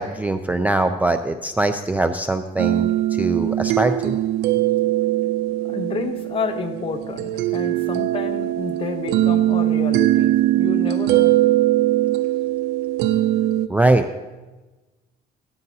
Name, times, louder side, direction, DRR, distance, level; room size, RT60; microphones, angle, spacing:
voice 1, 0.0-4.2 13.7-14.2, right 2 dB, 10° right, 8 dB, 0.3 m, -22 dB
sound 1, 2.6-13.7, right 14 dB, 75° right, 0.4 m, -21 dB
voice 2, 5.6-11.4, left 5 dB, 30° left, 7 dB, 0.8 m, -30 dB
17.0 x 13.5 x 2.7 m, 1.2 s
cardioid pair, 150°, 17 cm